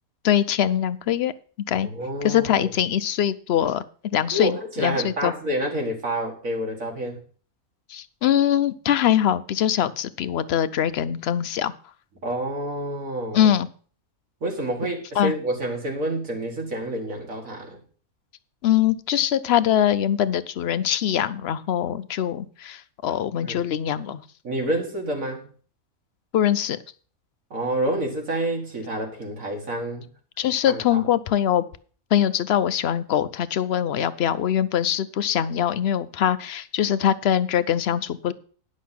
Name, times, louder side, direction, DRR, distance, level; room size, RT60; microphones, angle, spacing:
voice 1, 0.2-1.3 1.7-1.9 2.2-3.8 4.1-5.3 7.9-11.7 13.3-13.7 15.2-15.3 18.6-24.2 26.3-26.8 30.4-31.6 32.1-38.3, left 10 dB, 60° left, 15 dB, 0.7 m, -22 dB
voice 2, 1.8-2.7 4.3-7.2 12.2-13.5 14.4-17.8 23.4-23.6 24.4-25.5 27.5-30.1 30.7-31.0, right 1 dB, 70° right, 1 dB, 2.1 m, -28 dB
10.5 x 6.3 x 5.8 m, 0.42 s
omnidirectional pair, 1.5 m